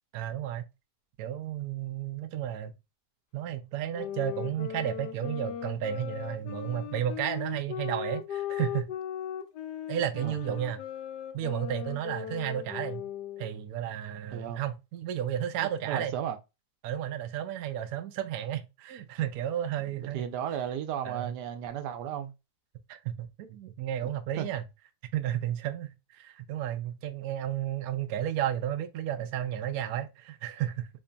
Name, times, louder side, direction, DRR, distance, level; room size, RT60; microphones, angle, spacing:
voice 1, 0.1-0.6 1.2-2.7 3.3-8.9 9.9-10.8 11.3-13.1 13.4-16.1 16.8-20.3 21.0-21.3 22.9-24.6 25.1-30.9, right 10 dB, 70° right, 1.0 m, -33 dB
sound 1, 3.9-13.6, left 9 dB, 85° left, 1.2 m, -38 dB
voice 2, 10.1-10.6 14.3-14.6 15.6-16.4 19.8-22.3 24.4-24.5, right 9 dB, 90° right, 1.3 m, -35 dB
3.9 x 3.4 x 2.2 m
omnidirectional pair, 1.7 m